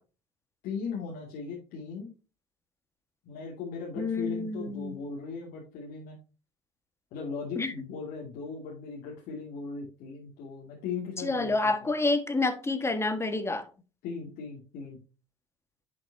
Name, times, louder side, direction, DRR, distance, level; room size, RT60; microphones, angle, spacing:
voice 1, 0.6-2.1 3.2-6.2 7.1-11.5 11.8-11.9 14.0-15.0, left 5 dB, 65° left, 2.5 m, -38 dB
voice 2, 4.0-5.0 7.5-7.7 11.2-13.7, left 3 dB, 15° left, 1.6 m, -28 dB
10.5 x 6.1 x 2.8 m
hypercardioid pair, 65°, 16 cm